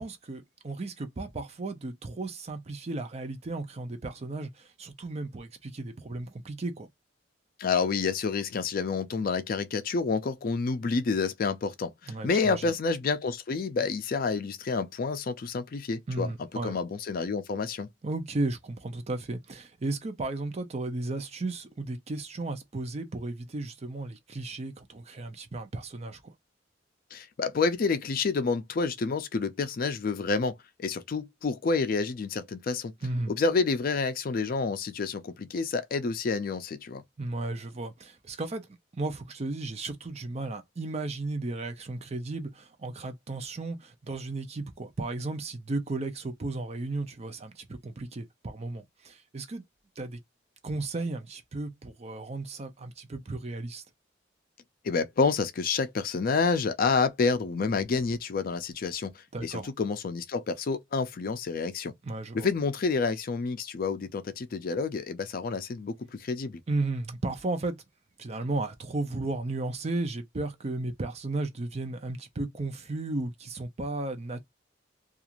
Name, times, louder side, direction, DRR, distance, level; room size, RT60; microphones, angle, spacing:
voice 1, 0.0-6.9 12.1-12.7 16.1-16.8 18.0-26.2 33.0-33.3 37.2-49.6 50.0-50.2 50.6-53.8 59.3-59.7 62.0-62.5 66.7-67.8 68.2-74.4, right 2 dB, 35° right, 0.5 m, -34 dB
voice 2, 7.6-16.3 16.6-17.9 27.1-30.5 30.8-32.9 33.3-37.0 54.8-61.9 62.3-66.6, left 4 dB, 50° left, 0.4 m, -29 dB
2.4 x 2.4 x 2.8 m
head